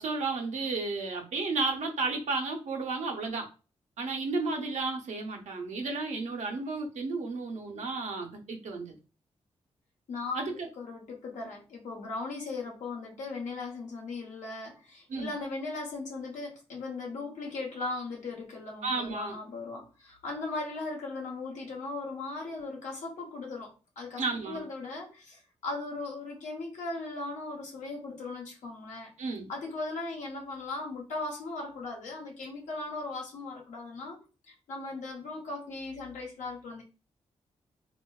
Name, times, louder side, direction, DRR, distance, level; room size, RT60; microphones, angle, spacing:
voice 1, 0.0-3.5 4.0-9.0 10.3-10.7 15.1-15.3 18.8-19.4 24.2-24.6 29.2-29.5, right 3 dB, 75° right, 3 dB, 0.7 m, -33 dB
voice 2, 10.1-29.1 29.5-34.2 34.5-36.8, left 3 dB, 85° left, -1 dB, 1.0 m, -38 dB
3.3 x 2.4 x 2.3 m, 0.33 s
cardioid pair, 50°, 12 cm